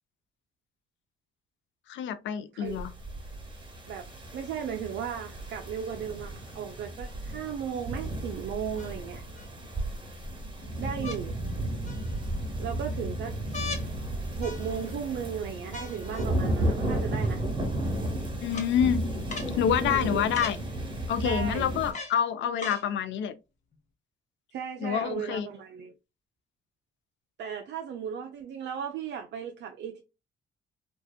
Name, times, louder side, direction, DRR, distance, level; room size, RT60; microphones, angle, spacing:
voice 1, 1.9-2.9 18.4-19.1 19.5-20.6 21.1-23.3 24.8-25.5, left 8 dB, 70° left, 0.4 m, -27 dB
sound 1, 2.7-21.9, right 1 dB, 25° right, 1.1 m, -33 dB
voice 2, 4.3-9.2 10.8-11.4 12.6-13.4 14.4-17.4 19.8-20.3 21.2-21.7 24.5-25.9 27.4-30.0, right 8 dB, 65° right, 0.4 m, -36 dB
sound 2, 7.0-7.1 8.8-9.5 11.0-11.2 11.9-12.4 13.5-13.9 14.4-15.0 15.7-16.3 17.2-17.3 18.5-18.7 19.3-19.5 20.3-20.6 21.9-22.2 22.6-22.9 23.7-23.8, left 3 dB, 35° left, 0.8 m, -39 dB
2.8 x 2.2 x 2.3 m
cardioid pair, 90°, 20 cm